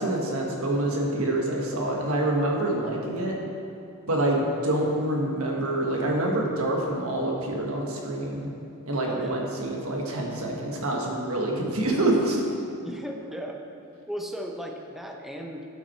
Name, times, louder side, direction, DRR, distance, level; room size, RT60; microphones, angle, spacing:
voice 1, 0.0-3.4 4.1-8.5 8.9-12.4, right 1 dB, 75° right, -1 dB, 1.5 m, -26 dB
voice 2, 9.0-9.4 12.8-13.6 14.1-15.7, equal, ahead, 2 dB, 0.6 m, -36 dB
12.0 x 5.9 x 4.4 m, 2.7 s
head